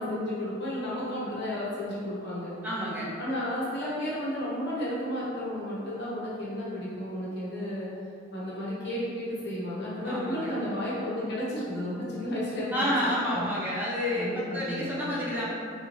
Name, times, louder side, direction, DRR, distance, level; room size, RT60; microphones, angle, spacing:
voice 1, 0.0-2.5 3.2-7.9 8.3-12.9 13.3-13.5 14.1-15.1, left 1 dB, 60° left, -8 dB, 1.0 m, -33 dB
voice 2, 2.6-3.1 10.0-10.5 12.7-15.5, equal, 10° right, -7 dB, 0.5 m, -30 dB
3.5 x 2.8 x 3.0 m, 2.5 s
head